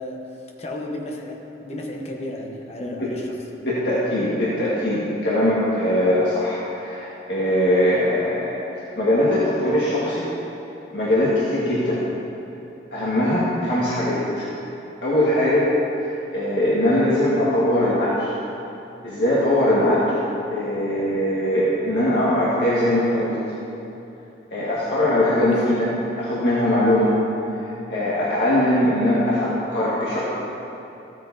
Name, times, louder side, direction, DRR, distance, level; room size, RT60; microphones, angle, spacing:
voice 1, 0.0-3.4 25.5-25.8, left 1 dB, 35° left, 0 dB, 1.0 m, -33 dB
voice 2, 3.6-8.6 9.0-10.3 10.9-12.0 12.9-14.5 15.0-18.4 19.0-20.2 20.5-23.4 24.5-25.9 26.2-27.1 27.5-30.3, left 1 dB, 75° left, -9 dB, 1.7 m, -21 dB
14.5 x 8.9 x 2.8 m, 2.9 s
head